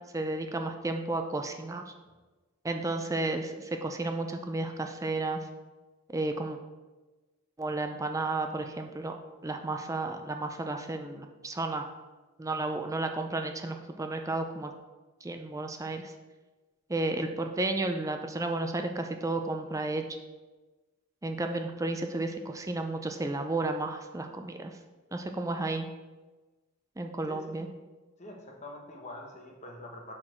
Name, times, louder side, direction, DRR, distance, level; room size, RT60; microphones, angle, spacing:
voice 1, 0.1-1.8 2.6-5.4 6.1-6.6 7.6-9.2 9.4-11.9 12.4-14.7 15.2-16.1 16.9-20.0 21.2-24.7 25.1-25.9 27.0-27.7, right 2 dB, 15° right, 5 dB, 0.4 m, -32 dB
voice 2, 27.2-27.6 28.2-30.1, left 1 dB, 35° left, 1 dB, 1.2 m, -45 dB
6.5 x 5.7 x 4.4 m, 1.2 s
head